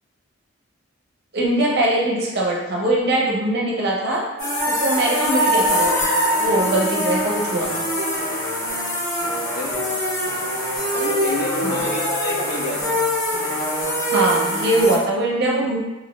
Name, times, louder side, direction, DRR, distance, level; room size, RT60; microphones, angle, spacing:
voice 1, 1.3-4.2 4.7-6.0 6.4-7.8 11.6-11.9 14.1-15.8, right 1 dB, 50° right, -3 dB, 0.5 m, -21 dB
sound 1, 4.4-15.0, equal, 85° left, 0.8 m, -23 dB
voice 2, 9.4-10.2 10.7-13.0, left 2 dB, 50° left, -1 dB, 0.4 m, -29 dB
2.5 x 2.0 x 3.0 m, 1.1 s
head